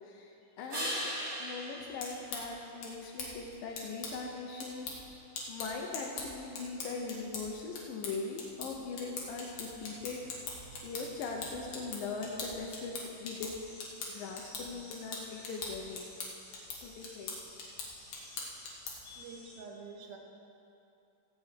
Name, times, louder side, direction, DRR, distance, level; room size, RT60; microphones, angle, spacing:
voice 1, 0.0-1.1 1.4-4.9 5.5-10.3 10.8-13.7 14.1-16.1 16.8-18.8 19.0-19.6, left 4 dB, 75° left, 0 dB, 2.5 m, -41 dB
sound 1, 0.7-3.3 9.0-13.0, equal, 20° right, 2.3 m, -43 dB
sound 2, 1.8-19.2, left 3 dB, 55° left, 2.7 m, -43 dB
sound 3, 9.6-19.6, left 1 dB, 25° left, 3.8 m, -57 dB
voice 2, 19.2-20.2, right 4 dB, 80° right, 1 dB, 3.1 m, -47 dB
16.0 x 5.5 x 8.3 m, 2.8 s
omnidirectional pair, 4.2 m